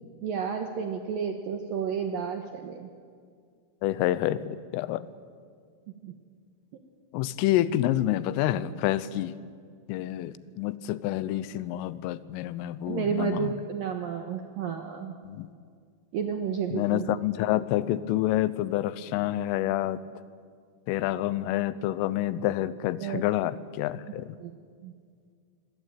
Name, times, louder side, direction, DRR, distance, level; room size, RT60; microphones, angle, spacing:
voice 1, 0.2-2.9 6.0-6.1 12.9-15.1 16.1-17.1 23.0-23.2 24.4-24.5 24.8-24.9, right 6 dB, 75° right, 5 dB, 2.2 m, -31 dB
voice 2, 3.8-5.1 7.1-9.3 9.9-13.5 15.3-15.5 16.7-20.0 20.9-24.3, left 13 dB, 85° left, 16 dB, 3.4 m, -28 dB
26.5 x 22.0 x 9.0 m, 2.1 s
omnidirectional pair, 5.8 m